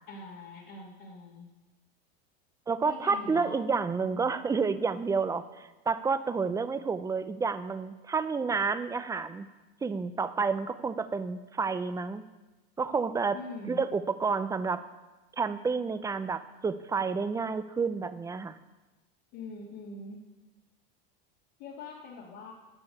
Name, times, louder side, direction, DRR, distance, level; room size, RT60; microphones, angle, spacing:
voice 1, 0.1-1.5 2.9-3.5 4.1-4.3 13.3-13.8 19.3-20.2 21.6-22.5, left 3 dB, 60° left, -5 dB, 2.4 m, -43 dB
voice 2, 2.7-9.5 9.8-12.2 12.8-13.4 13.7-14.8 15.4-18.6, right 5 dB, 10° right, 12 dB, 0.5 m, -30 dB
9.8 x 6.2 x 8.6 m, 1.1 s
supercardioid pair, 120°, 31 cm